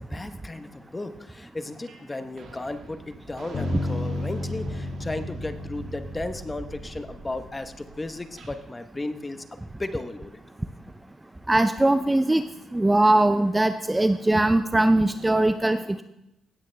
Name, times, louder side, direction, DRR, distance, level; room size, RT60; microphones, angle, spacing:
voice 1, 0.0-10.4, left 2 dB, 20° left, 9 dB, 0.8 m, -35 dB
sound 1, 1.9-2.1 2.4-8.6, right 3 dB, 65° right, 1.8 m, -43 dB
Bass guitar, 3.5-7.6, left 2 dB, 55° left, 2.0 m, -33 dB
voice 2, 11.5-12.4 12.7-16.0, right 1 dB, 10° right, 10 dB, 0.4 m, -21 dB
16.5 x 8.9 x 3.3 m, 0.88 s
cardioid pair, 90°, 0 cm